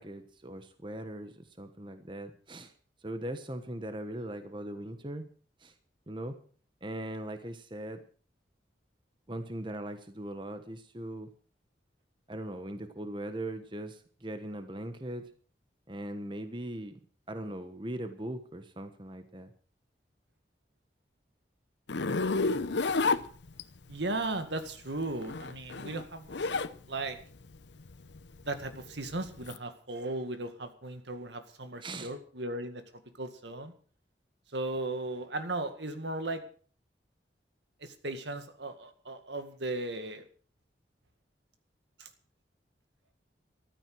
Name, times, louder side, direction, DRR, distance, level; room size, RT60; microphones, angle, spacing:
voice 1, 0.0-2.7 3.0-5.2 5.6-5.7 6.1-6.4 6.8-8.0 9.3-11.3 12.3-15.2 15.9-16.9 17.3-19.5 31.8-32.1, right 1 dB, 25° right, 9 dB, 1.2 m, -40 dB
Zipper (clothing), 21.9-23.9 25.1-26.7 27.1-29.6, left 3 dB, 80° left, 0.9 m, -31 dB
voice 2, 23.9-26.3 26.9-27.2 28.5-32.8 33.2-33.7 34.5-36.4 37.8-40.3 42.0-42.1, right 2 dB, 80° right, 8 dB, 2.1 m, -36 dB
14.5 x 12.5 x 6.2 m, 0.44 s
head